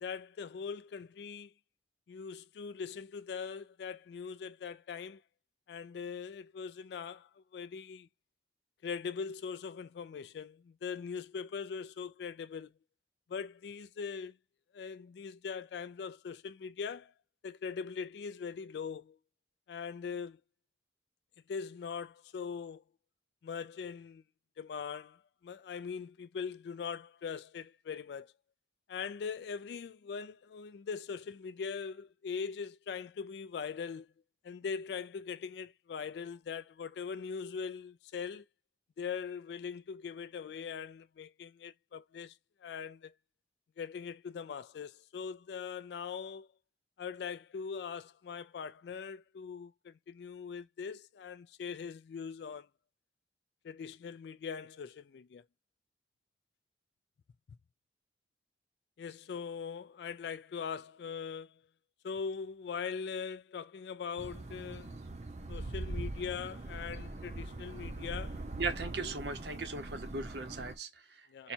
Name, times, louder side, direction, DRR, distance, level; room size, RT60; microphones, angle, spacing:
voice 1, 0.0-1.5 2.1-5.2 5.7-8.1 8.8-12.7 13.3-14.4 14.7-17.1 17.4-19.2 19.7-20.4 21.5-22.8 23.4-24.2 24.6-28.3 28.9-34.1 34.4-38.5 39.0-42.4 42.6-43.1 43.8-46.5 47.0-52.7 53.6-55.4 59.0-61.6 62.0-64.9 65.5-68.4 69.0-69.1 71.3-71.5, left 6 dB, 70° left, 0.3 m, -41 dB
sound 1, 64.2-70.7, right 2 dB, 40° right, 0.7 m, -42 dB
voice 2, 68.6-71.5, right 3 dB, 75° right, 0.9 m, -38 dB
4.0 x 2.2 x 4.4 m
head